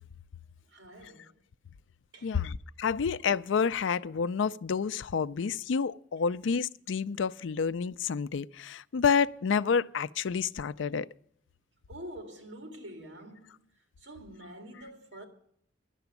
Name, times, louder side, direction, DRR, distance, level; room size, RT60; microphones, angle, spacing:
voice 1, 0.7-1.3 2.1-2.4 11.9-13.6 14.0-15.3, right 1 dB, 75° right, 2.1 m, -46 dB
voice 2, 2.2-11.1, left 6 dB, 85° left, 0.4 m, -29 dB
11.0 x 6.9 x 9.5 m
head